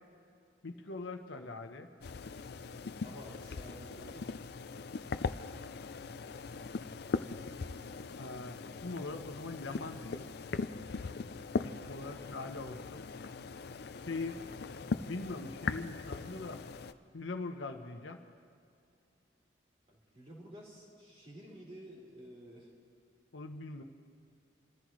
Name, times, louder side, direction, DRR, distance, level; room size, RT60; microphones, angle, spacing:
voice 1, 0.6-1.9 8.1-10.3 11.6-13.1 14.1-14.4 15.0-16.6 17.1-18.2 23.3-23.8, left 3 dB, 75° left, 5 dB, 0.9 m, -42 dB
sound 1, 2.0-16.9, left 4 dB, 55° left, 0.5 m, -40 dB
voice 2, 3.0-4.4 12.0-12.3 19.9-22.7, equal, 30° right, -5 dB, 3.8 m, -52 dB
27.5 x 14.5 x 3.2 m, 2.4 s
head